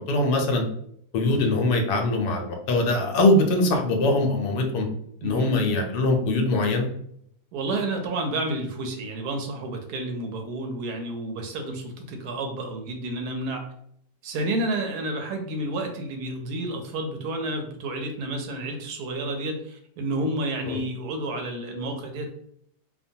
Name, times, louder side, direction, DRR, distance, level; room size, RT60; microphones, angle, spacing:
voice 1, 0.1-0.6 1.1-4.9 5.2-6.9 20.7-20.8, left 2 dB, 80° left, 3 dB, 1.2 m, -22 dB
voice 2, 7.5-13.7 14.2-22.3, right 1 dB, 75° right, 4 dB, 1.0 m, -30 dB
2.9 x 2.2 x 2.6 m, 0.68 s
omnidirectional pair, 1.8 m